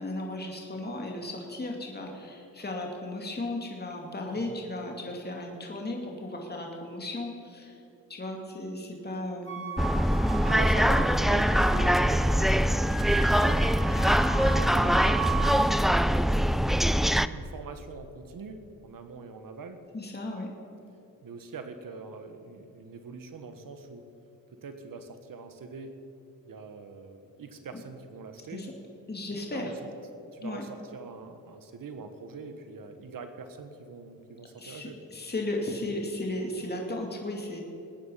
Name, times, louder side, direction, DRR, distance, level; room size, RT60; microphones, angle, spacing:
voice 1, 0.0-7.7 8.1-9.7 19.9-20.5 28.5-28.7 29.1-29.7 30.4-30.6 34.6-37.6, left 1 dB, 25° left, 0 dB, 2.4 m, -35 dB
Wind instrument woodwind instrument, 9.5-12.4 12.6-15.7, right 4 dB, 35° right, 2.4 m, -35 dB
sound 1, 9.8-17.3, equal, ahead, 0.3 m, -23 dB
voice 2, 10.4-13.6 14.3-15.8 17.1-19.8 21.2-24.1 24.5-26.0 26.5-28.7 29.5-29.8 30.3-35.0, right 4 dB, 65° right, 8 dB, 1.4 m, -43 dB
20.5 x 9.6 x 5.6 m, 2.7 s
cardioid pair, 65°, 35 cm